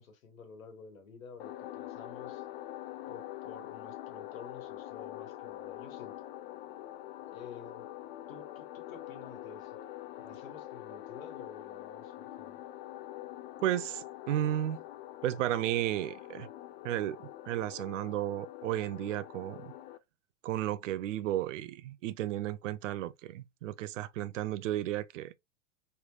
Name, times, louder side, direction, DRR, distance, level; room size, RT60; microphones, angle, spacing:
voice 1, 0.0-2.4 3.0-6.1 7.3-7.9 8.3-9.8 10.2-12.6, left 5 dB, 80° left, 1.4 m, -51 dB
sound 1, 1.4-20.0, left 14 dB, 45° left, 0.4 m, -45 dB
voice 2, 13.6-14.8 15.2-16.5 16.8-17.2 17.5-19.7 20.4-25.3, right 13 dB, 70° right, 0.5 m, -33 dB
3.3 x 3.0 x 2.3 m
hypercardioid pair, 105°, 40 cm